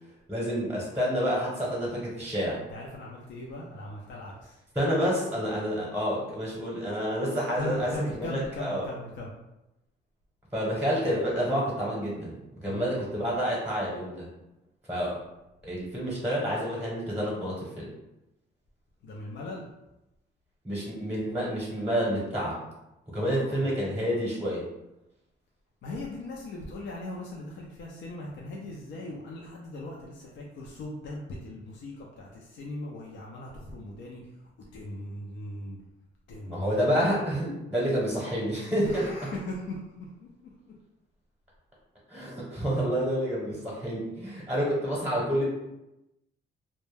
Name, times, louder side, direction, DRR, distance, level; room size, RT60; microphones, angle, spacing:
voice 1, 0.3-2.6 4.7-8.8 10.5-14.3 14.9-15.2 15.6-17.9 20.6-22.6 23.1-24.6 36.5-39.1 42.1-45.4, equal, 5° right, -5 dB, 0.8 m, -29 dB
voice 2, 2.5-4.6 7.6-9.3 12.7-12.9 19.0-19.7 23.1-23.7 25.8-35.8 36.3-37.0 38.8-40.3 40.7-40.8 42.8-42.9, left 1 dB, 65° left, -2 dB, 0.5 m, -39 dB
2.2 x 2.1 x 3.2 m, 0.92 s
cardioid pair, 90°, 20 cm